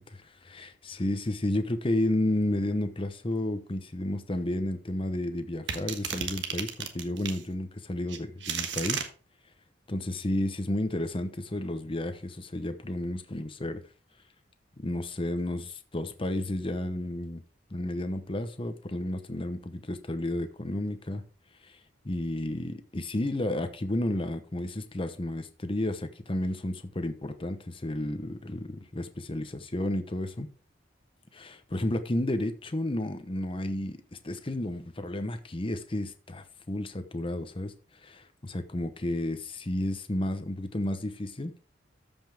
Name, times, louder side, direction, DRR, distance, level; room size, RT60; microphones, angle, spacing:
voice 1, 0.0-9.0 9.9-13.8 14.8-17.4 17.7-21.2 21.6-21.8 22.0-30.5 31.3-37.7 38.0-41.5, left 1 dB, 30° left, 0.9 m, -32 dB
sound 1, 5.7-7.4 8.1-9.1, right 7 dB, 75° right, 1.4 m, -33 dB
13.5 x 5.5 x 3.5 m
head